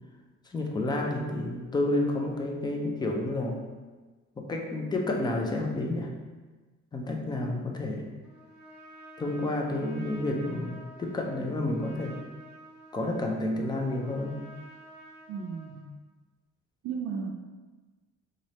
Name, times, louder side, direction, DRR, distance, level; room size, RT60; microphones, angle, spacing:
voice 1, 0.5-3.6 4.4-6.1 6.9-8.1 9.2-12.2 12.9-14.4, left 2 dB, 15° left, 1 dB, 0.4 m, -30 dB
Trumpet, 8.2-15.9, right 1 dB, 5° right, 1.1 m, -50 dB
voice 2, 15.3-15.8 16.8-17.3, right 6 dB, 70° right, 0 dB, 0.5 m, -34 dB
3.8 x 3.2 x 4.1 m, 1.3 s
cardioid pair, 175°, 29 cm